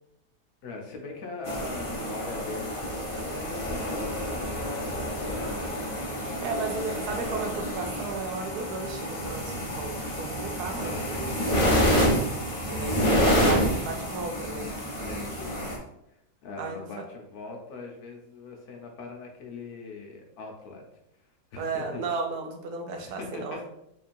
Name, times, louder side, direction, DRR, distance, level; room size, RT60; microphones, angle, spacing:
voice 1, 0.6-5.9 6.7-7.3 10.8-11.3 12.0-12.9 15.1-15.6 16.1-20.8 21.5-22.1 22.9-23.6, left 3 dB, 70° left, 1 dB, 1.2 m, -41 dB
sound 1, 1.4-15.8, equal, 35° left, 0.5 m, -28 dB
voice 2, 6.4-11.5 12.7-14.7 16.6-17.1 21.6-23.7, right 4 dB, 75° right, 4 dB, 1.1 m, -34 dB
4.8 x 3.0 x 2.5 m, 0.80 s
omnidirectional pair, 1.7 m